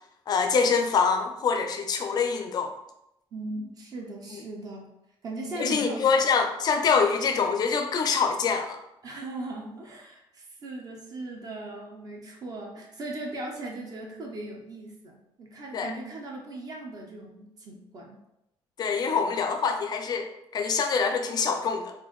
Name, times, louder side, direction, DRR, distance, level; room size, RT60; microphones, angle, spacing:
voice 1, 0.3-2.7 4.3-4.4 5.6-8.8 15.7-15.9 18.8-20.3 20.5-21.9, left 5 dB, 40° left, 5 dB, 0.4 m, -25 dB
voice 2, 3.3-4.9 5.2-6.1 9.0-18.2, right 2 dB, 35° right, 0 dB, 0.6 m, -38 dB
4.3 x 2.5 x 3.0 m, 0.85 s
cardioid pair, 175°, 10 cm